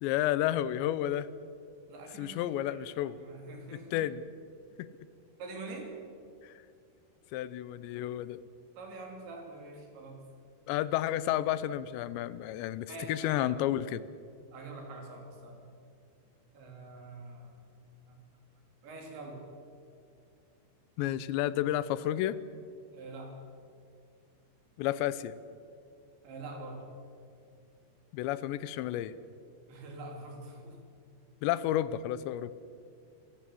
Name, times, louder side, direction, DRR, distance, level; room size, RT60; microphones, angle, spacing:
voice 1, 0.0-1.3 2.2-3.2 3.7-4.2 4.8-4.9 6.4-6.5 7.3-8.4 10.7-14.1 21.0-22.4 24.8-25.4 28.1-29.2 31.4-32.5, left 12 dB, 85° left, 16 dB, 3.0 m, -31 dB
voice 2, 1.9-4.0 5.4-5.9 8.8-10.2 12.9-13.6 14.5-15.7 16.5-17.7 18.1-18.2 18.8-19.4 22.9-23.4 26.2-26.9 29.7-30.8, right 2 dB, 85° right, 2 dB, 5.9 m, -45 dB
27.5 x 16.5 x 7.7 m, 2.4 s
omnidirectional pair, 5.0 m